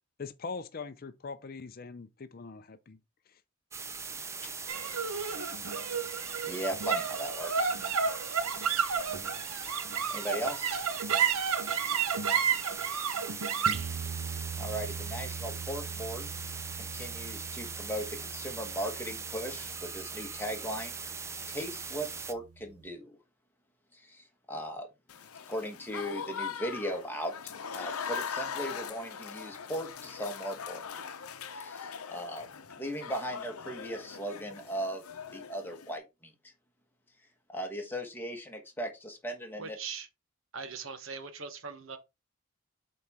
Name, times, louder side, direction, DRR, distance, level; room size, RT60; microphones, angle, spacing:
voice 1, 0.2-3.0, left 4 dB, 40° left, 0.5 m, -41 dB
sound 1, 3.7-22.3, right 5 dB, 15° right, 0.3 m, -40 dB
sound 2, 4.7-21.2, right 6 dB, 85° right, 0.8 m, -33 dB
voice 2, 6.4-7.7 10.1-10.8 14.6-16.3 16.7-20.9 21.5-23.1 23.9-24.9 25.5-30.8 31.5-32.5 32.8-35.0 35.3-36.3 37.5-39.8, equal, 10° left, 1.3 m, -38 dB
Applause / Crowd, 25.1-36.0, left 6 dB, 80° left, 0.7 m, -41 dB
voice 3, 39.6-40.1 40.5-42.0, right 5 dB, 65° right, 1.0 m, -40 dB
7.8 x 4.2 x 3.6 m
head